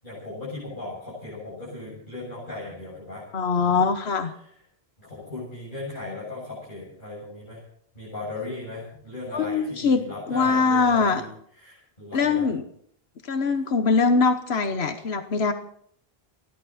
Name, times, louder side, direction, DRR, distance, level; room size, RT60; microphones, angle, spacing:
voice 1, 0.0-3.2 3.6-3.9 5.0-7.6 7.9-11.3 11.6-12.5, left 2 dB, 55° left, -8 dB, 7.9 m, -37 dB
voice 2, 3.3-4.3 9.3-11.2 12.1-12.6 13.2-15.5, left 4 dB, 90° left, 8 dB, 1.4 m, -22 dB
29.5 x 11.5 x 4.2 m, 0.65 s
omnidirectional pair, 1.0 m